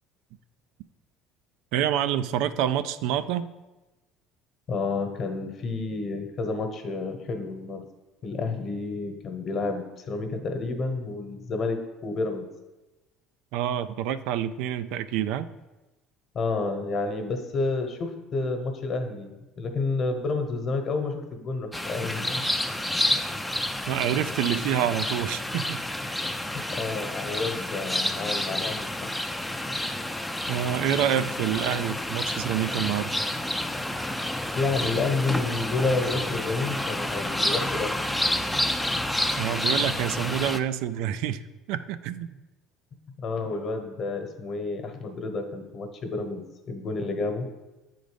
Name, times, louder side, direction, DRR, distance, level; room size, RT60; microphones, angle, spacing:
voice 1, 1.7-3.5 13.5-15.5 23.9-25.8 30.5-33.1 39.4-41.4 41.7-42.3, right 10 dB, 75° right, 12 dB, 0.3 m, -27 dB
voice 2, 4.7-7.9 8.2-12.5 16.3-22.4 26.5-29.1 34.5-38.0 43.2-47.5, left 3 dB, 45° left, 5 dB, 1.1 m, -30 dB
sound 1, 21.7-40.6, left 1 dB, 5° left, 0.4 m, -29 dB
8.1 x 3.9 x 5.1 m, 1.1 s
supercardioid pair, 95°, 0 cm